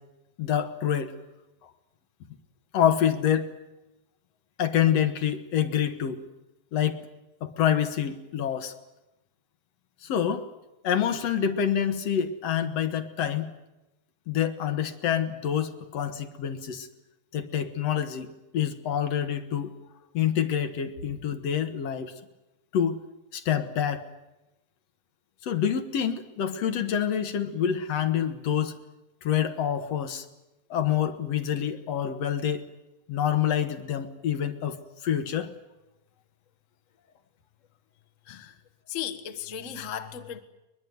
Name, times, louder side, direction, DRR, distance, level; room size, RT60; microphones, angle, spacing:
voice 1, 0.4-1.1 2.7-3.5 4.6-6.2 6.7-7.1 7.4-8.7 10.0-10.5 10.8-13.5 14.3-16.9 17.3-19.7 20.1-22.1 22.7-23.0 23.3-24.0 25.4-28.8 29.2-30.3 30.7-32.6 33.1-34.8 35.0-35.5, left 9 dB, 65° left, 2.2 m, -27 dB
voice 2, 38.2-40.4, left 9 dB, 45° left, 1.0 m, -36 dB
22.0 x 21.5 x 9.4 m
omnidirectional pair, 3.4 m